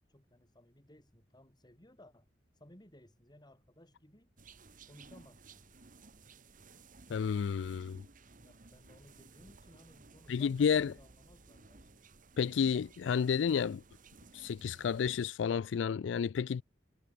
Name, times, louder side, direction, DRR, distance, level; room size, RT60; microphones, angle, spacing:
voice 1, 0.1-2.3 2.6-4.3 4.9-5.7 8.4-12.0, left 1 dB, 25° left, 6.3 m, -60 dB
sound 1, 4.4-15.2, right 3 dB, 45° right, 1.6 m, -57 dB
voice 2, 7.1-8.0 10.3-10.9 12.4-13.8 14.3-16.6, left 7 dB, 85° left, 0.4 m, -31 dB
head